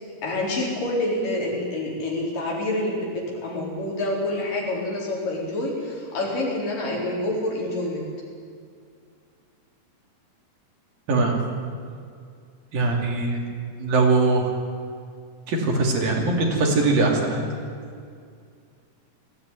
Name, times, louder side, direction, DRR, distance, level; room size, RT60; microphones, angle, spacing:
voice 1, 0.2-8.1, left 1 dB, 65° left, -2 dB, 5.7 m, -27 dB
voice 2, 12.7-13.4 13.8-14.5 15.5-17.4, right 3 dB, 70° right, 0 dB, 4.5 m, -21 dB
19.0 x 15.5 x 9.5 m, 2.2 s
omnidirectional pair, 4.2 m